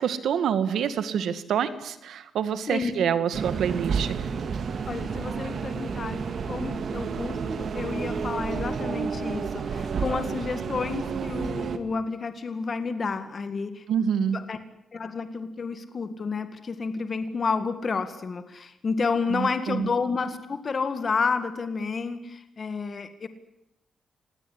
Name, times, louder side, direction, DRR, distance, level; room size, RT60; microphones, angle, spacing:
voice 1, 0.0-4.2 13.9-14.4 19.3-19.9, right 8 dB, 85° right, 12 dB, 2.0 m, -27 dB
voice 2, 2.7-3.2 4.9-13.9 14.1-14.6 14.9-23.3, left 4 dB, 45° left, 10 dB, 1.9 m, -30 dB
sound 1, 3.3-11.8, right 5 dB, 60° right, 2.3 m, -30 dB
26.5 x 18.5 x 10.0 m, 0.83 s
cardioid pair, 95°, 0 cm